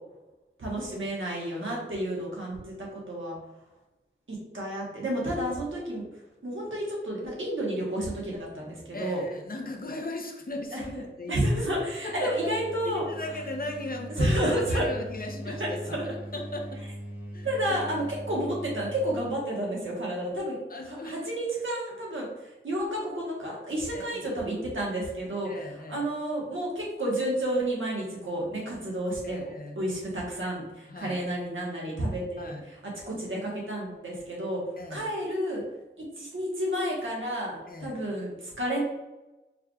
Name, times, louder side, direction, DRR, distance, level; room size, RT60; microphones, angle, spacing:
voice 1, 0.6-3.3 4.3-6.1 6.4-9.2 10.7-10.8 11.3-13.0 14.2-14.9 15.4-16.0 17.4-20.6 21.0-25.5 25.9-29.4 29.8-34.6 34.9-35.6 36.2-38.8, right 1 dB, 80° right, -3 dB, 1.3 m, -31 dB
voice 2, 8.9-11.5 12.0-12.5 12.8-16.0 16.3-16.8 17.3-17.8 20.7-21.2 23.9-24.3 25.4-26.1 29.2-29.8 30.9-31.2 32.4-32.7 34.8-35.1 37.7-38.0, left 2 dB, 45° left, 2 dB, 0.7 m, -37 dB
sound 1, 11.6-19.4, equal, 10° right, 1.2 m, -41 dB
4.7 x 3.1 x 2.4 m, 1.0 s
wide cardioid pair, 65°, 20 cm